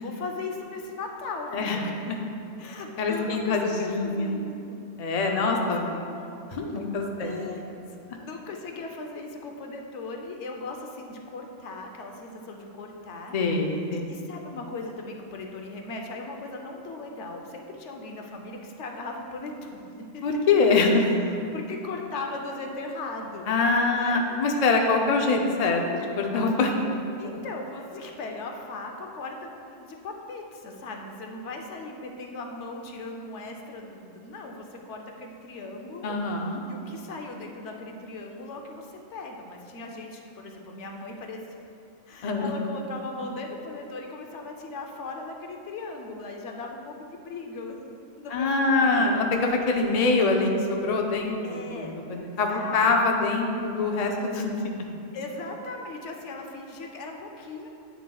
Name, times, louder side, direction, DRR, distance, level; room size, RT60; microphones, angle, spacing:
voice 1, 0.0-2.0 2.6-4.8 5.4-6.4 7.2-7.6 8.1-13.4 13.9-20.2 21.0-23.5 23.9-24.3 26.8-26.9 27.2-36.1 36.7-41.4 42.1-47.8 48.2-49.2 51.4-52.0 52.5-53.1 55.1-57.7, left 3 dB, 80° left, 2 dB, 1.0 m, -38 dB
voice 2, 3.0-4.4 5.0-5.9 6.5-7.6 13.3-14.1 20.2-21.0 23.5-27.0 36.0-36.6 42.2-42.5 48.3-54.7, left 3 dB, 45° left, 2 dB, 0.6 m, -24 dB
9.0 x 6.9 x 2.3 m, 2.6 s
omnidirectional pair, 1.2 m